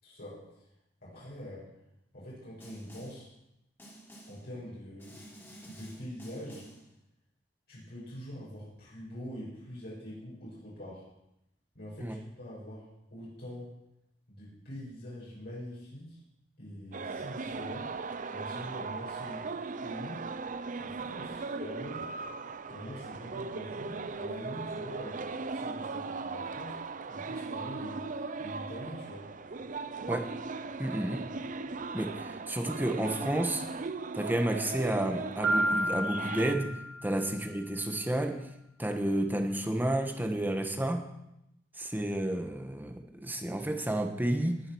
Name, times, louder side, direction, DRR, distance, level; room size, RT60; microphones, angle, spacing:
voice 1, 0.0-0.4 1.0-1.7 2.1-3.3 4.3-5.2 5.7-6.7 7.7-11.0 11.7-13.7 14.3-16.2 16.6-17.9 18.3-19.5 19.8-20.3 20.8-22.0 22.6-25.2 25.5-26.8 27.1-29.3 37.1-37.3, equal, 60° left, -7 dB, 6.3 m, -44 dB
Snare drum, 2.6-3.3 3.8-4.5 5.0-6.9, right 1 dB, 15° left, 3.3 m, -51 dB
sound 1, 16.9-36.5, right 4 dB, 45° right, 0.6 m, -38 dB
voice 2, 30.8-31.2 31.9-33.6 34.1-36.7 37.0-38.4 38.8-41.1 41.8-44.6, right 1 dB, 10° right, 5 dB, 1.5 m, -31 dB
Piano, 35.4-37.3, right 1 dB, 65° right, 2.7 m, -31 dB
19.0 x 7.8 x 6.4 m, 0.84 s
head